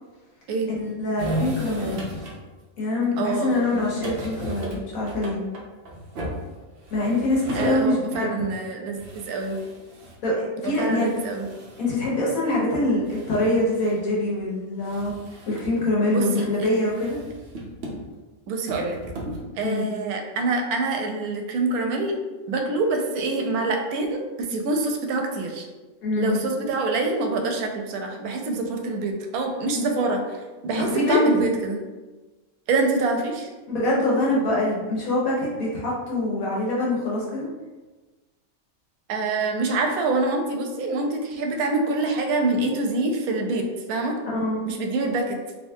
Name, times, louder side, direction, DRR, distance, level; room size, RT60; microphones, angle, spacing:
voice 1, 0.7-2.0 2.8-5.4 6.9-8.3 10.2-10.4 10.6-11.1 11.8-15.1 15.5-17.2 19.6-19.9 26.0-26.4 30.8-31.2 33.7-37.5 44.3-44.6, left 2 dB, 75° left, -5 dB, 1.4 m, -24 dB
sound 1, 1.2-2.4 3.0-3.1 3.4-7.9 8.3-8.4 8.6-8.7 8.9-10.2 11.0-12.0 12.8-14.0 14.3-14.4 14.8-15.8 16.3-16.5 16.8-18.2 18.7-19.4, equal, 55° right, 0.7 m, -36 dB
voice 2, 3.2-3.8 7.5-9.6 10.6-11.5 16.1-16.7 18.5-19.0 19.6-22.1 22.5-25.7 26.2-30.4 30.6-31.8 32.7-33.5 39.1-44.2 44.7-45.4, right 3 dB, 90° right, 3 dB, 1.1 m, -25 dB
3.4 x 2.8 x 2.7 m, 1.2 s
omnidirectional pair, 1.5 m